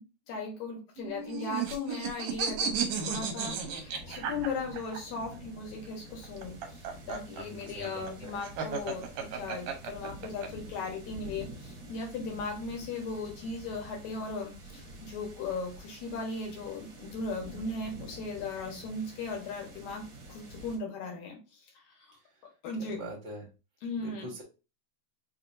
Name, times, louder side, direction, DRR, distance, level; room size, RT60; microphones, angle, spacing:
voice 1, 0.3-6.5 7.1-20.0 20.3-21.4 22.6-23.0 23.8-24.3, left 3 dB, 75° left, 1 dB, 2.5 m, -37 dB
sound 1, 1.0-5.0 6.2-10.5, right 6 dB, 75° right, 1.8 m, -34 dB
sound 2, 2.9-20.8, equal, 55° right, 1.6 m, -48 dB
voice 2, 7.3-8.4 22.7-23.5 24.0-24.4, right 1 dB, 40° right, -3 dB, 1.1 m, -43 dB
5.5 x 2.7 x 2.6 m, 0.30 s
omnidirectional pair, 3.3 m